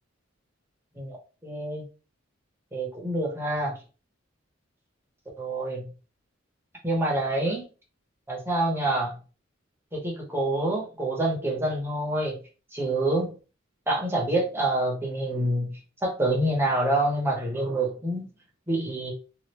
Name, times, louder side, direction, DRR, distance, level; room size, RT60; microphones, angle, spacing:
voice 1, 1.4-1.8 2.7-3.7 5.4-5.8 6.8-7.6 8.3-9.1 9.9-12.4 12.7-13.3 13.9-15.7 16.0-18.3 18.7-19.1, right 1 dB, 10° right, -2 dB, 1.0 m, -26 dB
3.2 x 2.5 x 2.9 m, 0.35 s
head